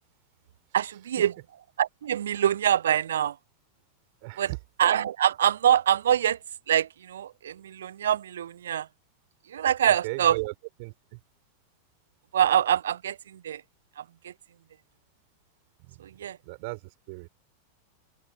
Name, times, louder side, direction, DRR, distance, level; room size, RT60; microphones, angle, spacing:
voice 1, 0.7-1.3 1.8-3.4 4.4-4.5 4.8-6.4 6.7-8.9 9.5-10.4 12.3-13.6 14.0-14.3 16.0-16.4, right 10 dB, 65° right, 1.5 m, -25 dB
voice 2, 4.2-4.6 9.9-10.5 10.8-11.2 15.9-16.0 16.5-16.8 17.1-17.3, right 29 dB, 45° right, 6.0 m, -35 dB
figure-of-eight pair, 90°, 0 cm